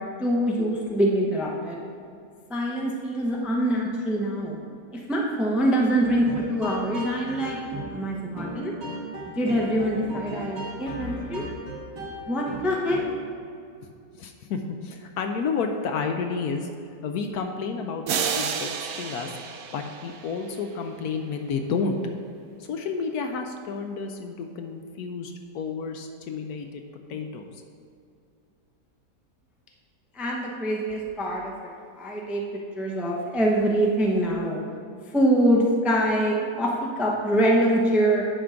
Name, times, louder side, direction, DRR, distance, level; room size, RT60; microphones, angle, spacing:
voice 1, 0.2-1.8 2.5-4.6 4.9-7.6 7.9-8.7 9.4-11.4 12.3-13.0 30.1-32.4 32.8-34.6 35.1-38.2, right 1 dB, ahead, -2 dB, 0.5 m, -24 dB
sound 1, 6.0-13.3, right 1 dB, 85° right, 2.6 m, -36 dB
voice 2, 14.2-16.7 17.0-19.3 19.7-22.0 22.6-26.8 27.1-27.6, left 5 dB, 70° left, 4 dB, 1.0 m, -31 dB
sound 2, 18.1-20.7, right 7 dB, 70° right, 1.0 m, -30 dB
9.5 x 3.8 x 5.7 m, 2.4 s
omnidirectional pair, 1.8 m